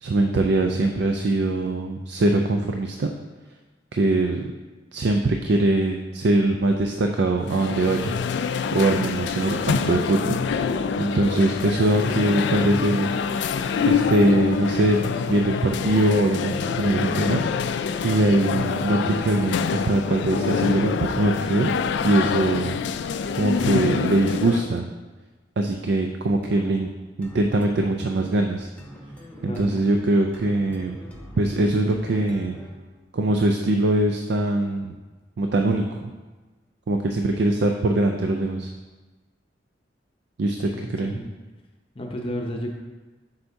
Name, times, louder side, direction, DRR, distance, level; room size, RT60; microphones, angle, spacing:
voice 1, 0.0-3.1 3.9-4.5 4.9-8.2 8.7-10.4 11.0-13.1 13.9-15.0 15.3-17.7 18.0-21.7 22.0-22.8 23.4-24.9 25.6-26.9 27.2-28.7 29.4-31.0 31.4-32.6 33.1-34.9 35.4-36.1 36.9-38.7 40.4-41.2, right 2 dB, 65° right, 4 dB, 0.4 m, -22 dB
sound 1, 7.4-24.7, left 6 dB, 65° left, 0.3 m, -26 dB
sound 2, 26.4-32.9, equal, 10° left, 1.0 m, -43 dB
voice 2, 40.7-41.3 41.9-42.8, equal, 30° left, 1 dB, 0.6 m, -32 dB
7.9 x 5.6 x 2.7 m, 1.3 s
head